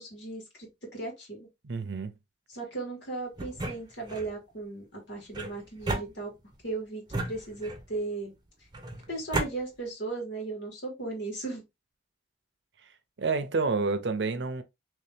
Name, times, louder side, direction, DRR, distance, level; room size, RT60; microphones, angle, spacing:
voice 1, 0.0-1.5 2.5-6.3 6.6-8.4 9.1-11.6, right 3 dB, 75° left, 1.9 m, -36 dB
voice 2, 1.6-2.1 13.2-14.6, right 4 dB, 75° right, 0.6 m, -29 dB
sound 1, 3.4-4.3 5.3-6.6 7.1-8.0 8.7-9.5, right 2 dB, 25° right, 0.7 m, -34 dB
3.1 x 2.8 x 3.4 m
head